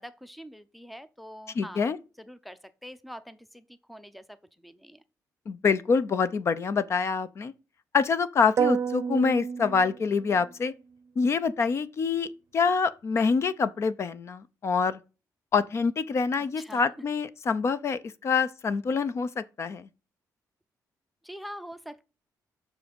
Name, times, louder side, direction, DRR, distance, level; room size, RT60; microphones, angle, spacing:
voice 1, 0.0-1.9 2.2-4.4 4.6-5.0 16.4-16.8 21.2-22.1, equal, ahead, 0.5 m, -44 dB
voice 2, 1.5-2.0 5.5-7.5 7.9-10.7 11.2-15.0 15.5-19.9, left 5 dB, 45° left, 0.6 m, -26 dB
sound 1, 8.6-10.5, right 7 dB, 50° right, 0.6 m, -29 dB
7.3 x 6.3 x 5.2 m
cardioid pair, 150°, 7 cm